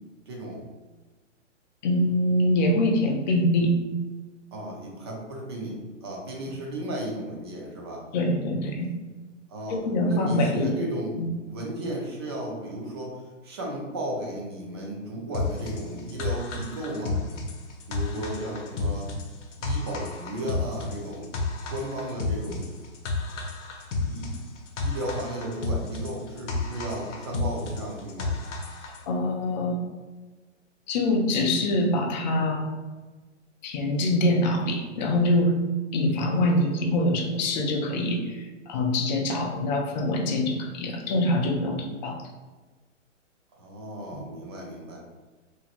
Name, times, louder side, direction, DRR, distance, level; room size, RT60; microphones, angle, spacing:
voice 1, 0.3-0.6 4.5-8.0 9.5-11.2 11.5-17.2 17.9-19.1 19.6-21.3 21.7-22.7 24.0-24.3 24.8-28.4 43.5-45.0, right 1 dB, 20° right, -1 dB, 0.4 m, -34 dB
voice 2, 1.8-3.8 8.1-8.9 9.7-10.7 11.2-11.3 29.1-29.8 30.9-32.8 33.6-35.6 35.9-42.2, left 1 dB, 40° left, 1 dB, 0.4 m, -24 dB
sound 1, 15.3-29.0, left 3 dB, 70° left, 0.7 m, -32 dB
2.8 x 2.6 x 2.4 m, 1.3 s
hypercardioid pair, 140°, 37 cm